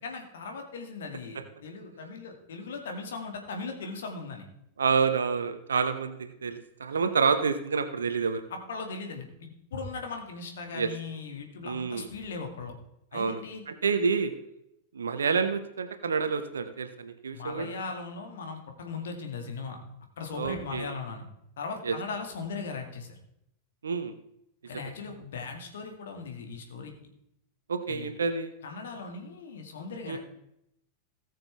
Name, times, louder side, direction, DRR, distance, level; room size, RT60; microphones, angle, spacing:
voice 1, 0.0-4.5 8.5-12.7 13.1-13.6 17.3-19.8 20.2-21.3 21.6-23.2 24.6-26.9 27.9-28.1 28.6-30.2, left 4 dB, 60° left, 3 dB, 2.1 m, -38 dB
voice 2, 4.8-8.4 10.7-10.9 11.6-12.1 13.1-14.3 14.9-17.7 20.3-20.9 21.8-21.9 23.8-24.1 27.7-28.5 30.0-30.2, right 5 dB, 70° right, 8 dB, 0.9 m, -28 dB
18.5 x 6.7 x 3.5 m, 0.80 s
figure-of-eight pair, 90°, 0 cm